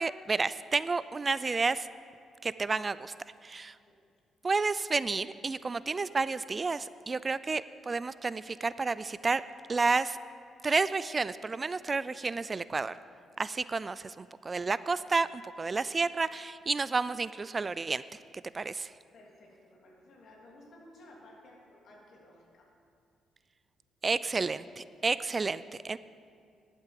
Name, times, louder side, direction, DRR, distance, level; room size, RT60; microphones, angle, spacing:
voice 1, 0.0-1.9 2.4-3.1 3.4-3.7 4.4-9.4 9.7-10.2 10.6-13.0 13.4-18.0 18.5-18.9 24.0-26.0, right 4 dB, 30° right, 16 dB, 0.3 m, -31 dB
voice 2, 19.1-22.7, left 1 dB, 65° left, -1 dB, 3.0 m, -55 dB
11.0 x 8.6 x 7.6 m, 2.3 s
cardioid pair, 90°, 0 cm